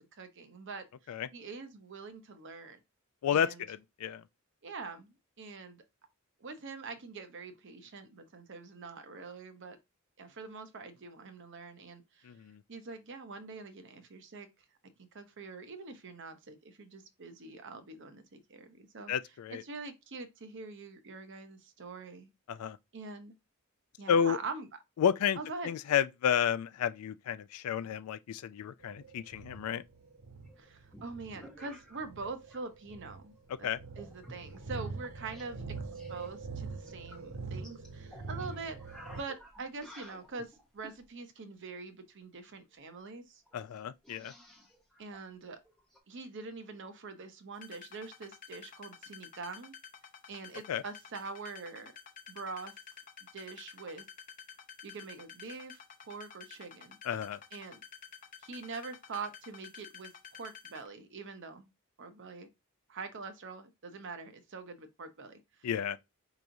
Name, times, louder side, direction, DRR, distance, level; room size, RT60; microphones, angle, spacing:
voice 1, 0.0-2.8 3.3-3.6 4.6-5.8 6.4-9.8 10.2-12.3 12.7-14.5 15.0-19.1 19.5-22.3 22.9-23.3 24.0-24.7 25.4-25.7 30.6-33.3 33.6-33.7 34.0-35.8 36.1-38.8 39.1-43.4 45.0-45.6 46.1-49.7 50.3-51.9 52.3-52.7 53.3-54.1 54.8-55.8 56.0-57.0 57.5-57.8 58.4-61.7 62.0-62.5 62.9-65.7, right 4 dB, 55° right, 0.7 m, -44 dB
voice 2, 3.2-4.2 12.3-12.6 19.1-19.6 22.5-22.8 24.1-24.4 25.0-25.4 25.6-29.8 33.6-33.8 43.5-44.3 50.7-50.8 57.1-57.4 65.6-66.0, left 8 dB, 80° left, 0.3 m, -31 dB
sound 1, 28.8-39.2, right 4 dB, 70° right, 1.4 m, -44 dB
sound 2, 30.5-32.6 32.9-33.4 33.9-35.5 35.8-41.0 42.7-42.8 43.0-43.1 43.5-46.0, equal, ahead, 0.7 m, -55 dB
sound 3, 47.5-60.9, left 7 dB, 40° left, 0.6 m, -51 dB
4.8 x 2.9 x 2.6 m
head